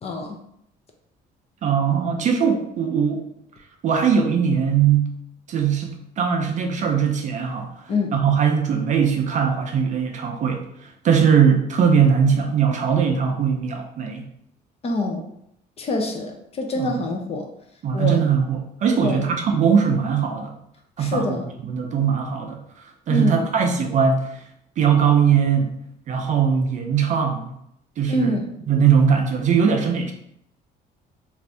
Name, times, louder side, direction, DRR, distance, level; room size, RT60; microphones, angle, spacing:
voice 1, 0.0-0.4 7.9-8.1 14.8-15.2 15.8-17.5 17.9-18.2 19.0-19.3 21.0-21.5 23.1-23.5 28.1-28.5, left 2 dB, 35° left, 3 dB, 0.6 m, -25 dB
voice 2, 1.6-3.2 3.8-5.2 5.5-7.7 8.1-10.7 11.0-14.2 16.8-16.9 17.8-20.6 21.0-21.4 21.7-22.6 23.1-24.3 24.8-25.8 26.1-27.5 28.0-28.4 28.7-30.1, right 7 dB, 45° right, 4 dB, 0.5 m, -20 dB
2.6 x 2.5 x 3.2 m, 0.75 s
cardioid pair, 110°, 17 cm